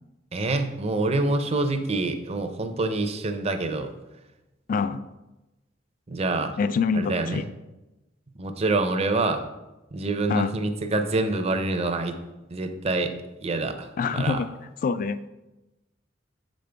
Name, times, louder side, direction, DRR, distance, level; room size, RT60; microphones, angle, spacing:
voice 1, 0.3-3.9 6.1-6.6 6.9-7.4 8.4-9.4 9.9-12.2 12.5-13.1 13.4-14.4, right 2 dB, 35° right, 7 dB, 0.5 m, -26 dB
voice 2, 4.7-5.0 6.6-7.5 10.3-10.5 14.0-14.5 14.8-15.3, left 5 dB, 45° left, 13 dB, 0.3 m, -25 dB
7.3 x 5.2 x 3.4 m, 1.0 s
head